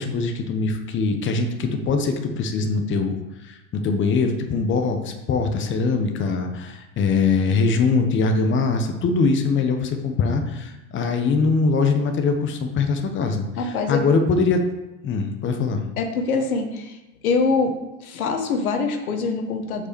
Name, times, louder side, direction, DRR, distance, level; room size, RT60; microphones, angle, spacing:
voice 1, 0.0-3.1 3.4-14.7 15.0-15.9, left 4 dB, 30° left, 5 dB, 1.1 m, -22 dB
voice 2, 13.6-14.0 16.0-17.0 17.2-17.7 18.0-19.9, left 4 dB, 85° left, 5 dB, 1.4 m, -24 dB
6.1 x 5.2 x 6.9 m, 0.99 s
hypercardioid pair, 115°, 42 cm